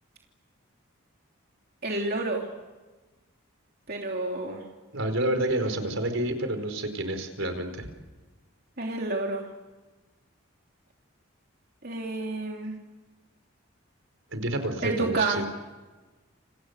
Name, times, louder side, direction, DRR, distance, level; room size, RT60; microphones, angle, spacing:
voice 1, 1.8-2.5 3.9-4.7 8.8-9.5 11.8-12.8 14.8-15.4, right 2 dB, 45° right, 0 dB, 3.2 m, -29 dB
voice 2, 4.9-7.9 14.3-15.5, right 1 dB, 70° right, 7 dB, 4.6 m, -29 dB
29.5 x 28.0 x 6.7 m, 1.2 s
head